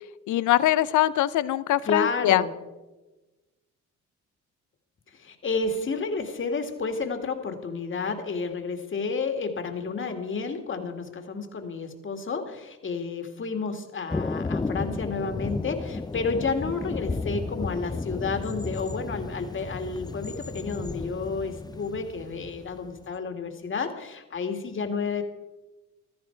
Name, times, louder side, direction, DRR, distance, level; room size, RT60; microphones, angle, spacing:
voice 1, 0.3-2.4, left 13 dB, 75° left, 16 dB, 0.7 m, -22 dB
voice 2, 1.8-2.5 5.1-25.2, left 4 dB, 40° left, 5 dB, 2.1 m, -31 dB
Thunder, 14.1-23.1, left 3 dB, 15° left, 0.5 m, -33 dB
15.5 x 13.5 x 4.6 m, 1.1 s
cardioid pair, 90°, 30 cm